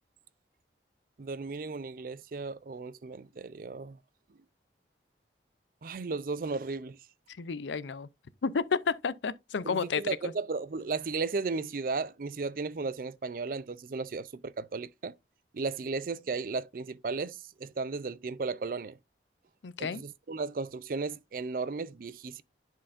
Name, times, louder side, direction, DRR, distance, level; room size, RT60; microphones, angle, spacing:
voice 1, 1.2-4.0 5.8-7.0 9.6-15.1 15.5-19.0 19.8-22.4, right 4 dB, 50° right, 0.4 m, -35 dB
voice 2, 7.3-8.1 8.4-10.3 19.6-20.0, left 5 dB, 90° left, 0.5 m, -31 dB
10.5 x 4.6 x 2.5 m
head